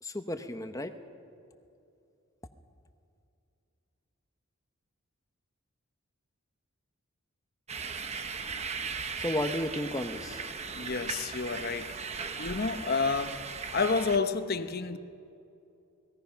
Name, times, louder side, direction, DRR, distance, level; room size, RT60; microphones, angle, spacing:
voice 1, 0.0-0.9 9.2-10.5, left 1 dB, 15° left, 1.0 m, -33 dB
sound 1, 7.7-14.2, right 5 dB, 30° right, 0.9 m, -38 dB
voice 2, 10.7-11.9 12.4-13.4 13.7-15.0, left 4 dB, 45° left, 1.0 m, -30 dB
30.0 x 20.5 x 5.9 m
head